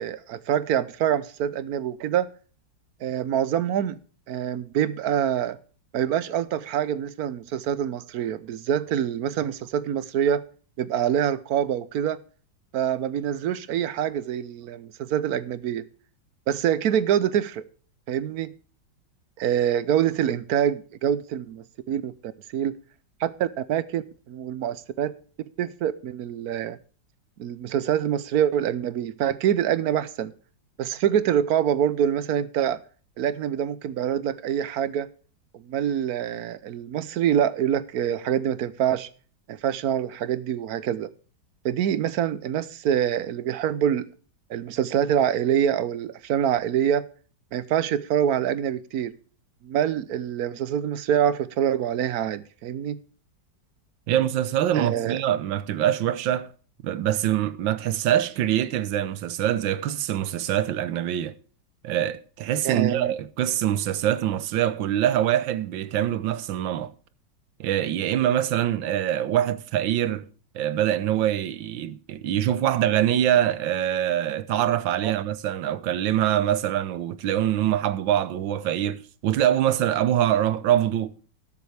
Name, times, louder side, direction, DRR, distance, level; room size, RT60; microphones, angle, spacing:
voice 1, 0.0-2.3 3.0-4.0 4.3-5.6 5.9-10.4 10.8-12.2 12.7-15.8 16.5-17.7 18.1-18.5 19.4-22.7 23.2-25.1 25.6-26.8 27.4-30.3 30.8-32.8 33.2-35.1 35.5-39.1 39.5-41.1 41.6-44.1 44.5-47.1 47.5-49.1 49.6-53.0 54.7-55.2 62.6-63.1 75.0-75.2, right 9 dB, 65° right, 1.1 m, -25 dB
voice 2, 54.1-56.5 56.8-61.3 61.8-66.9 67.6-70.3 70.5-81.2, right 11 dB, 85° right, 1.5 m, -24 dB
19.5 x 7.2 x 3.4 m
omnidirectional pair, 2.0 m